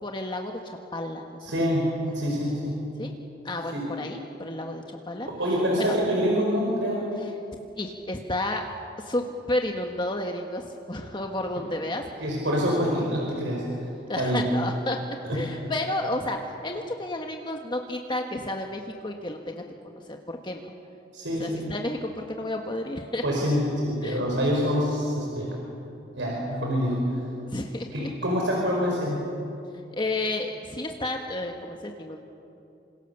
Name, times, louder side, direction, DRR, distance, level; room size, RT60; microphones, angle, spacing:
voice 1, 0.0-1.4 3.0-3.1 3.4-5.3 5.7-5.9 7.5-8.6 9.0-12.0 14.1-15.0 15.3-19.6 20.1-20.6 21.4-23.2 24.0-24.2 27.4-28.1 29.9-32.2, left 1 dB, 25° left, 3 dB, 1.4 m, -31 dB
voice 2, 1.4-2.8 3.7-3.9 5.3-7.1 12.2-13.9 14.2-14.4 15.2-15.4 21.1-21.7 23.2-25.6 26.1-27.2 27.9-29.2, equal, 80° right, -2 dB, 5.1 m, -26 dB
27.5 x 26.0 x 7.0 m, 2.7 s
head